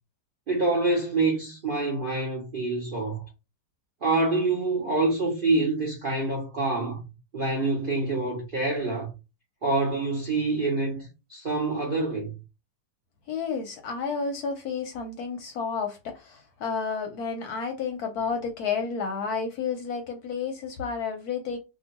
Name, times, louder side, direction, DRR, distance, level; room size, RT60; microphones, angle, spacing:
voice 1, 0.5-3.2 4.0-7.0 7.3-9.1 9.6-12.3, right 2 dB, 55° right, 0.5 m, -26 dB
voice 2, 13.3-21.6, left 5 dB, 70° left, 1.0 m, -31 dB
2.8 x 2.3 x 2.9 m
omnidirectional pair, 2.0 m